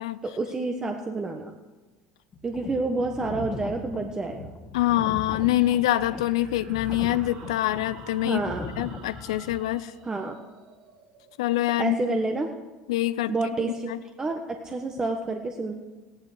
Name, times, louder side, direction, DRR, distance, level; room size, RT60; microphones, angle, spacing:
voice 1, 0.2-1.5 2.4-4.5 8.2-8.7 10.0-10.4 11.8-12.5 13.3-13.9 14.2-15.7, right 3 dB, 25° right, 4 dB, 1.3 m, -29 dB
sound 1, 2.3-9.6, left 3 dB, 35° left, 1.9 m, -39 dB
voice 2, 4.7-8.4 8.8-9.9 11.4-12.2 12.9-13.3 13.9-14.0, left 15 dB, 85° left, 12 dB, 0.6 m, -25 dB
sound 2, 5.3-12.6, right 5 dB, 70° right, 2.8 m, -51 dB
16.0 x 11.5 x 6.5 m, 1.2 s
hypercardioid pair, 85°, 3 cm